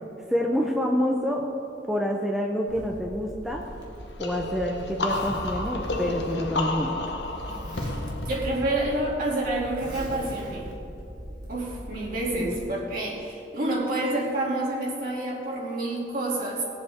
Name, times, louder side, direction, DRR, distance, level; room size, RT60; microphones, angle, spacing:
voice 1, 0.3-1.5 1.9-3.6 4.2-7.1, equal, ahead, -1 dB, 0.6 m, -27 dB
Zipper (clothing), 2.7-12.6, equal, 25° right, 1.9 m, -39 dB
sound 1, 4.2-9.8, left 2 dB, 70° left, 1.1 m, -32 dB
voice 2, 7.7-10.7 11.5-16.6, right 1 dB, 50° right, -4 dB, 2.6 m, -28 dB
20.5 x 7.8 x 3.6 m, 2.8 s
head